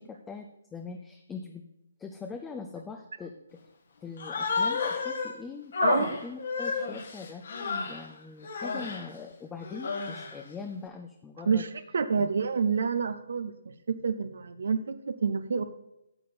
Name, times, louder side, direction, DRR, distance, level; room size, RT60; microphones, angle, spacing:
voice 1, 0.0-1.6 2.0-3.6 4.0-7.4 7.8-11.6 12.2-12.3, left 5 dB, 10° left, 4 dB, 0.7 m, -42 dB
Human voice, 4.2-5.3 5.7-8.1 8.4-9.1 9.6-10.4, left 4 dB, 55° left, 1.8 m, -31 dB
voice 2, 5.8-6.1 11.5-11.7 11.9-13.5 13.9-15.6, right 5 dB, 60° right, 11 dB, 0.8 m, -28 dB
13.5 x 8.4 x 4.2 m, 0.84 s
figure-of-eight pair, 135°, 0 cm